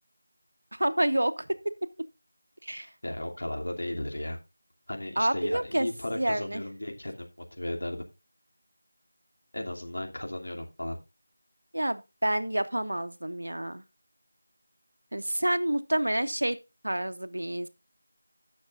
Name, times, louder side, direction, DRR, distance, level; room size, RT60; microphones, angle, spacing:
voice 1, 0.7-1.9 2.6-2.9 5.2-5.9 6.1-6.6 11.7-13.8 15.1-17.7, right 1 dB, 85° right, 11 dB, 1.1 m, -28 dB
voice 2, 3.0-4.4 4.9-8.0 9.5-11.0, left 1 dB, 75° left, 2 dB, 2.8 m, -35 dB
16.0 x 6.5 x 2.5 m, 0.26 s
figure-of-eight pair, 170°, 0 cm